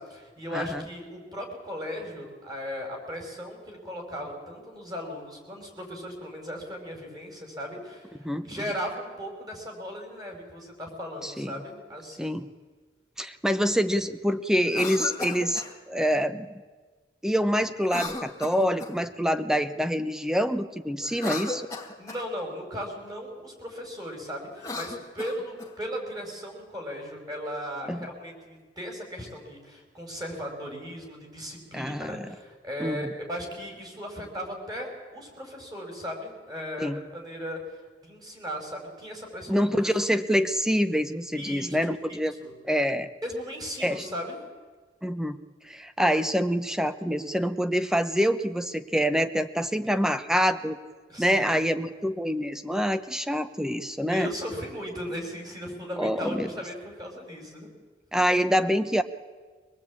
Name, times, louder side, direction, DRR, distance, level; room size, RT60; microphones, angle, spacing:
voice 1, 0.0-12.3 22.0-37.6 38.0-39.6 41.4-41.8 42.4-42.5 43.2-44.4 51.1-51.7 54.1-57.7, equal, 20° right, 2 dB, 5.3 m, -37 dB
voice 2, 0.5-0.8 8.2-8.5 11.2-11.5 12.2-12.5 13.2-16.5 17.2-21.7 27.9-28.1 31.7-32.3 32.8-33.1 36.8-37.0 39.5-42.3 42.6-43.1 43.8-44.0 45.0-45.4 45.7-50.8 51.2-54.3 56.0-56.5 58.1-59.0, equal, 5° right, 10 dB, 0.8 m, -26 dB
Cough, 14.6-15.7 17.8-19.1 21.0-22.3 24.5-25.7, left 3 dB, 15° left, 2.2 m, -35 dB
24.5 x 19.0 x 8.6 m, 1.4 s
head